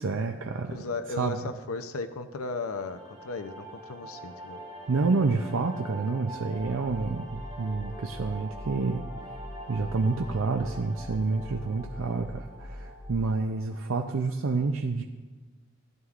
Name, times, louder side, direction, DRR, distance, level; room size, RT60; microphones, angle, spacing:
voice 1, 0.0-0.8 1.2-1.4 4.9-9.1 9.7-15.0, right 3 dB, 70° right, 4 dB, 0.5 m, -28 dB
voice 2, 0.7-4.6, left 3 dB, 85° left, 9 dB, 0.6 m, -36 dB
sound 1, 2.7-13.8, right 1 dB, 15° right, 3.4 m, -44 dB
sound 2, 7.2-13.4, left 1 dB, ahead, 0.7 m, -43 dB
16.0 x 11.0 x 2.5 m, 1.3 s
head